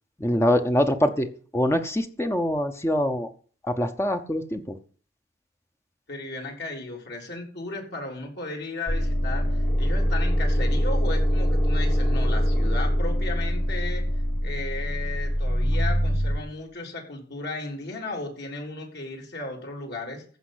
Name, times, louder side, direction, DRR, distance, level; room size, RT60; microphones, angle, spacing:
voice 1, 0.2-1.3 1.5-3.3 3.6-4.8, left 1 dB, 15° left, 7 dB, 0.8 m, -24 dB
voice 2, 6.1-14.0 14.4-20.2, left 2 dB, 60° left, 1 dB, 3.9 m, -35 dB
sound 1, 8.9-16.4, equal, 35° left, 2.0 m, -23 dB
14.5 x 5.4 x 8.0 m, 0.43 s
head